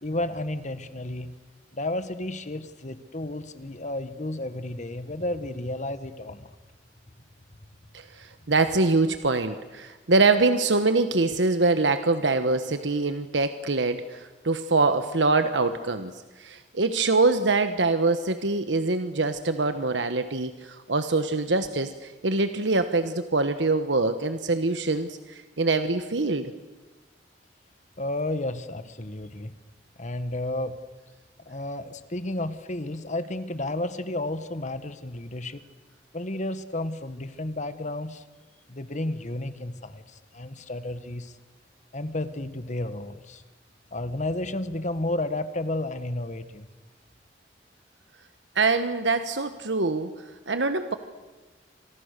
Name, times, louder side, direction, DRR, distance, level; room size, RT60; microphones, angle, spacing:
voice 1, 0.0-1.3 1.7-6.5 28.0-29.5 30.0-30.7 31.4-35.6 36.1-38.2 38.7-41.3 41.9-43.4 43.9-46.7, left 1 dB, 40° left, 11 dB, 1.6 m, -32 dB
voice 2, 7.9-26.5 48.5-50.9, right 3 dB, 85° right, 9 dB, 1.2 m, -24 dB
30.0 x 26.0 x 6.8 m, 1.2 s
head